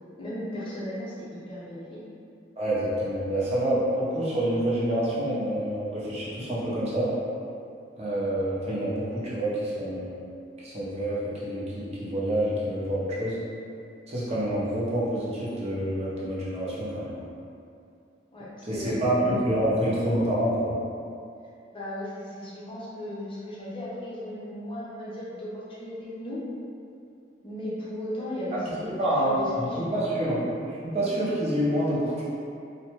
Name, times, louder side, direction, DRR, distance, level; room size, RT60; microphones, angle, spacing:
voice 1, 0.2-2.0 18.3-19.4 21.7-26.4 27.4-30.1, left 1 dB, 30° left, -8 dB, 0.6 m, -36 dB
voice 2, 2.6-7.1 8.0-10.3 10.6-13.4 14.1-17.2 18.6-20.8 28.7-30.4 30.8-32.2, right 1 dB, 35° right, -8 dB, 0.6 m, -27 dB
2.5 x 2.1 x 2.9 m, 2.5 s
head